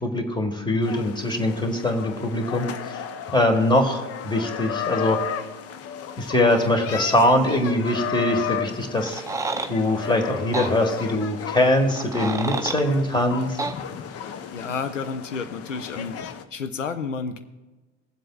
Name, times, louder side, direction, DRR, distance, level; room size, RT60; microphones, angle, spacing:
voice 1, 0.0-3.0 3.3-5.2 6.2-9.2 9.7-13.6, left 1 dB, 10° left, 6 dB, 1.7 m, -22 dB
sound 1, 0.8-16.4, left 7 dB, 40° left, 0.8 m, -34 dB
sound 2, 9.1-9.7 10.5-10.7 11.9-12.8 13.6-13.8, right 3 dB, 10° right, 0.6 m, -29 dB
voice 2, 14.5-16.1 16.5-17.4, left 5 dB, 90° left, 9 dB, 0.7 m, -30 dB
22.0 x 7.6 x 2.4 m, 1.2 s
hypercardioid pair, 70°, 37 cm